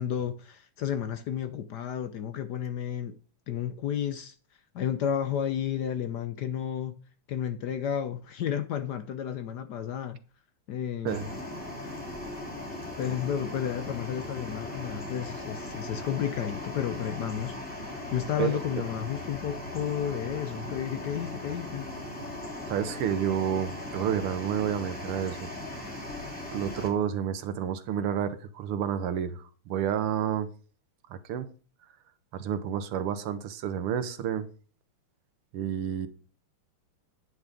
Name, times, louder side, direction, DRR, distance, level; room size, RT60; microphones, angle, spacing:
voice 1, 0.0-3.2 3.5-4.3 4.7-7.0 7.3-10.2 10.7-11.2 13.0-21.9, left 9 dB, 65° left, 1.1 m, -32 dB
sound 1, 11.1-26.9, left 1 dB, 5° left, 3.0 m, -38 dB
voice 2, 22.7-25.5 26.2-30.5 31.1-31.5 32.3-34.5 35.5-36.1, right 9 dB, 85° right, 1.9 m, -30 dB
9.6 x 6.1 x 5.1 m
omnidirectional pair, 2.4 m